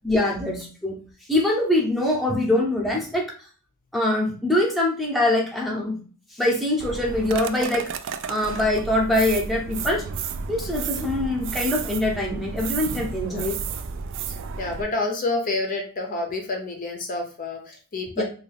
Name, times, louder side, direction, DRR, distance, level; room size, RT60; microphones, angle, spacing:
voice 1, 0.0-1.0 1.3-3.3 3.9-6.0 6.3-7.9 8.3-10.0 10.5-13.6 18.2-18.3, left 1 dB, ahead, -3 dB, 0.7 m, -23 dB
sound 1, 6.8-14.8, right 6 dB, 55° right, 0.3 m, -32 dB
voice 2, 14.3-18.2, left 2 dB, 40° left, 2 dB, 0.6 m, -29 dB
3.4 x 2.4 x 3.3 m, 0.39 s
head